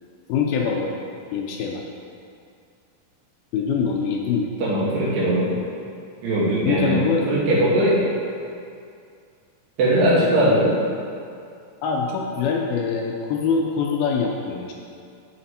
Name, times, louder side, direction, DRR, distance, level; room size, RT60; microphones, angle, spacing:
voice 1, 0.3-0.9 1.3-1.8 3.5-4.5 6.6-7.3 10.2-10.3 11.8-14.7, left 5 dB, 80° left, 0 dB, 2.3 m, -24 dB
voice 2, 4.6-5.5 6.2-8.2 9.8-10.7, right 1 dB, 80° right, -8 dB, 4.5 m, -20 dB
13.5 x 5.2 x 4.2 m, 2.4 s
omnidirectional pair, 4.8 m